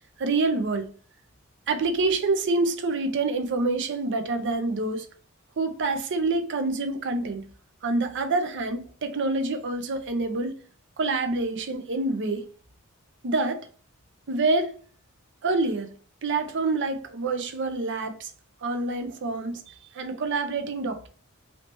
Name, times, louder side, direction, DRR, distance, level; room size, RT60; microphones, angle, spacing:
voice 1, 0.2-0.9 1.7-5.1 5.6-7.5 7.8-10.6 11.0-12.5 13.2-13.7 14.3-14.8 15.4-15.9 16.2-18.3 18.6-21.1, right 3 dB, 55° right, 0.6 m, -27 dB
3.2 x 2.8 x 2.9 m
head